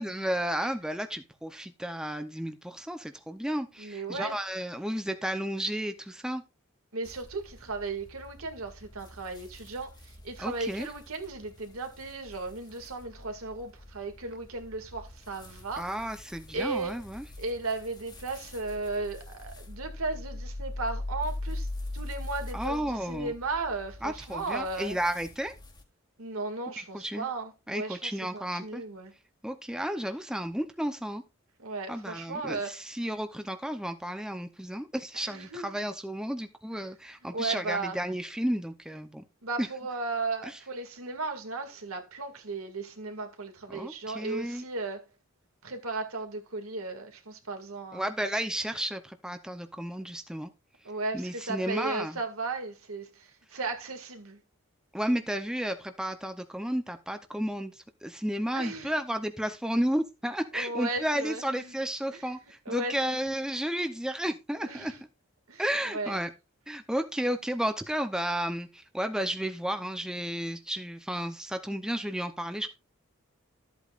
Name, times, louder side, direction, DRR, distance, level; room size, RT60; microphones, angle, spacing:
voice 1, 0.0-6.4 10.4-10.9 15.8-17.2 22.5-23.3 24.0-25.5 26.8-27.3 27.7-28.8 29.4-31.2 31.9-39.2 39.6-39.7 43.7-44.6 47.9-50.5 51.1-52.2 54.9-64.9 65.6-66.3 66.7-72.7, equal, 5° right, 0.7 m, -32 dB
voice 2, 3.8-4.4 6.9-15.9 16.5-17.0 17.4-21.7 21.9-25.0 26.2-29.1 31.6-32.8 35.1-35.7 37.3-38.0 39.4-45.1 45.6-48.1 50.8-54.4 58.5-58.9 60.5-61.8 62.1-62.3 62.7-63.2 64.6-65.0 65.5-66.2, right 3 dB, 80° right, 2.2 m, -36 dB
sound 1, 7.0-25.8, left 1 dB, 20° left, 1.7 m, -42 dB
13.0 x 8.3 x 2.5 m
head